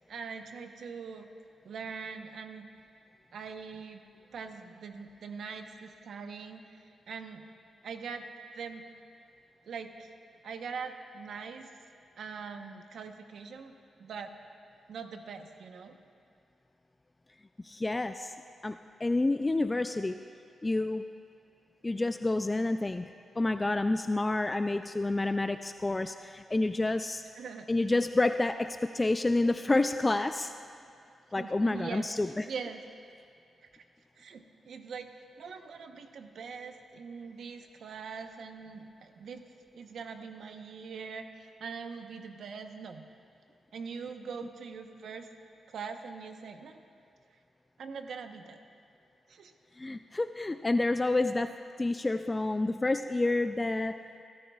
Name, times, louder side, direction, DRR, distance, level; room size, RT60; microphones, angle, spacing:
voice 1, 0.1-1.3 1.6-2.7 3.3-4.0 4.3-7.5 7.8-8.3 8.5-8.8 9.7-10.1 10.4-11.7 12.2-14.3 14.9-16.0 27.3-27.7 31.4-32.1 32.5-32.8 34.2-39.5 39.7-43.1 43.7-45.3 45.7-46.8 47.8-48.6 49.3-49.5, right 5 dB, 75° right, 6 dB, 0.9 m, -42 dB
voice 2, 17.6-18.3 18.6-20.2 20.6-21.1 21.8-27.2 27.7-30.5 31.3-32.5 49.8-54.0, left 2 dB, 20° left, 9 dB, 0.3 m, -29 dB
24.0 x 13.0 x 2.4 m, 2.4 s
cardioid pair, 80°, 0 cm